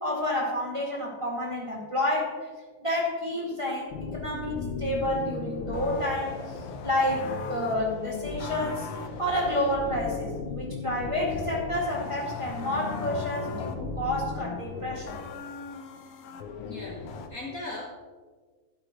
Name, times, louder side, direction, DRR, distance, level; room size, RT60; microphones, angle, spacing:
voice 1, 0.0-2.3 2.8-6.4 6.8-8.9 9.2-15.2, left 1 dB, 10° right, -5 dB, 1.7 m, -29 dB
sound 1, 3.9-17.3, left 4 dB, 70° left, 1.4 m, -36 dB
voice 2, 16.6-17.9, left 2 dB, 85° left, -2 dB, 0.7 m, -38 dB
12.0 x 10.0 x 3.1 m, 1.5 s
omnidirectional pair, 3.3 m